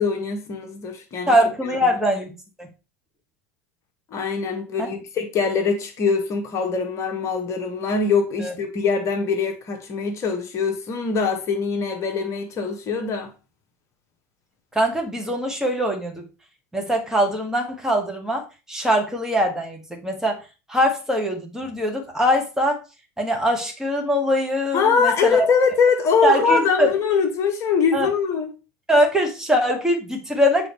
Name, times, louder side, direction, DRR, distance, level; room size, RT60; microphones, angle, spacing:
voice 1, 0.0-1.3 4.1-13.3 24.7-28.5, left 5 dB, 35° left, 1.2 m, -22 dB
voice 2, 1.3-2.3 2.6-2.7 4.8-4.9 8.4-8.5 14.7-16.3 16.7-20.4 20.7-22.8 23.2-25.5 26.2-26.9 27.9-28.1 28.9-30.7, equal, 5° right, 1.7 m, -22 dB
7.8 x 4.0 x 3.2 m
figure-of-eight pair, 75°, 8 cm